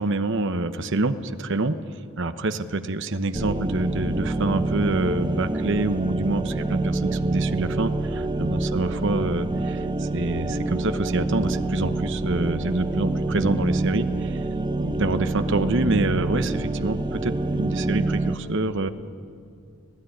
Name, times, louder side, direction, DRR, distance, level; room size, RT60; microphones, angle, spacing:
voice 1, 0.0-1.8 2.2-14.4 14.8-18.9, right 2 dB, 60° right, 10 dB, 1.0 m, -26 dB
sound 1, 3.3-18.4, right 2 dB, 20° right, 0.9 m, -26 dB
25.0 x 17.0 x 10.0 m, 2.4 s
head